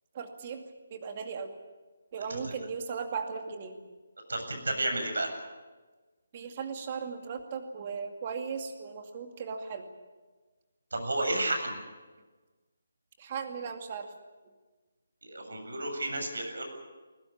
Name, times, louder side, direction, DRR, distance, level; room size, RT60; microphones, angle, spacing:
voice 1, 0.1-1.6 2.1-3.8 6.3-9.9 13.2-14.1, right 5 dB, 30° right, 5 dB, 2.4 m, -37 dB
voice 2, 4.3-5.3 10.9-11.8 15.2-16.6, right 2 dB, 90° right, 4 dB, 7.9 m, -31 dB
21.5 x 19.5 x 8.9 m, 1.3 s
hypercardioid pair, 170°, 0 cm